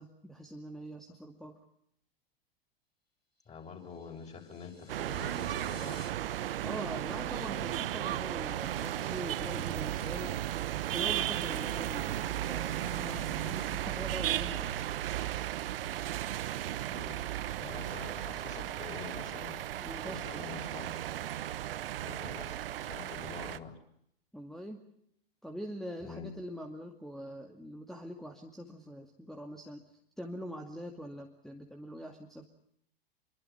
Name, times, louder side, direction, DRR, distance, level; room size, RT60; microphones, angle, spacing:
voice 1, 0.0-1.6 6.6-10.4 10.9-14.7 19.8-20.3 24.3-24.8 25.4-32.4, equal, ahead, 1 dB, 2.3 m, -43 dB
sound 1, 3.4-6.1, left 3 dB, 85° left, 4.6 m, -55 dB
voice 2, 3.5-6.1 16.9-17.2 17.6-19.6 20.0-21.1 22.0-23.8 26.0-26.3, left 6 dB, 25° left, 3 dB, 7.2 m, -46 dB
sound 2, 4.9-23.6, right 12 dB, 70° right, 1.1 m, -35 dB
26.5 x 24.0 x 5.9 m, 0.72 s
hypercardioid pair, 100°, 30 cm